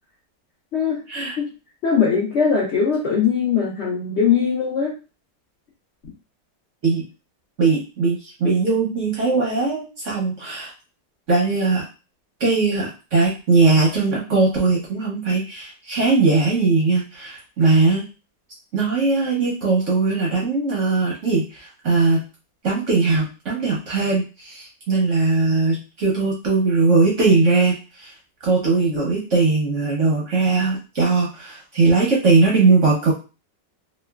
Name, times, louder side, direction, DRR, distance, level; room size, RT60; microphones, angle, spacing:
voice 1, 0.7-1.0 1.4-1.5 1.8-5.0, left 6 dB, 75° left, -3 dB, 0.6 m, -20 dB
voice 2, 7.6-10.7 11.3-11.9 12.4-18.0 18.7-22.2 22.6-28.1 28.4-33.1, right 3 dB, 60° right, -3 dB, 0.8 m, -19 dB
3.0 x 2.2 x 2.2 m, 0.31 s
omnidirectional pair, 1.9 m